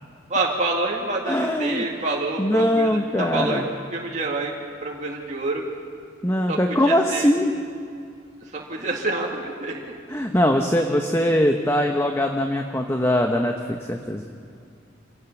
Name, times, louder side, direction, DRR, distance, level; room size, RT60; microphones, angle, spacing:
voice 1, 0.3-3.6 3.9-5.7 6.5-7.3 8.4-9.9, right 2 dB, 35° right, -2 dB, 2.1 m, -27 dB
voice 2, 1.3-1.8 2.4-3.6 6.2-7.5 10.1-14.2, left 1 dB, 15° left, 3 dB, 0.9 m, -21 dB
26.0 x 16.5 x 7.1 m, 2.3 s
head